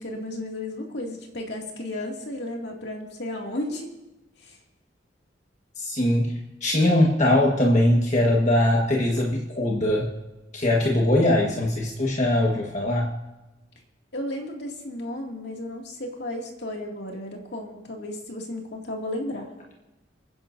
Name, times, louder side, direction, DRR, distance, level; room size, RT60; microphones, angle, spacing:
voice 1, 0.0-3.9 4.4-4.6 14.1-19.5, left 1 dB, 65° left, 0 dB, 2.4 m, -33 dB
voice 2, 5.8-10.1 10.5-13.1, left 1 dB, 40° left, -2 dB, 1.5 m, -21 dB
29.0 x 10.5 x 2.7 m, 1.1 s
head